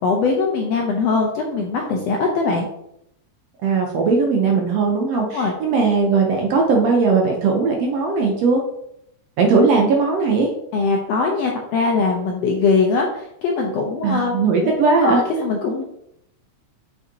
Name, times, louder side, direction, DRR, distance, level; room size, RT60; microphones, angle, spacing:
voice 1, 0.0-2.7 5.1-5.5 10.7-14.4 14.6-14.7 15.0-15.8, left 4 dB, 75° left, 0 dB, 1.5 m, -21 dB
voice 2, 3.6-8.6 9.4-10.5 14.0-15.2, right 4 dB, 70° right, 1 dB, 1.6 m, -18 dB
6.9 x 5.5 x 2.8 m, 0.76 s
omnidirectional pair, 3.6 m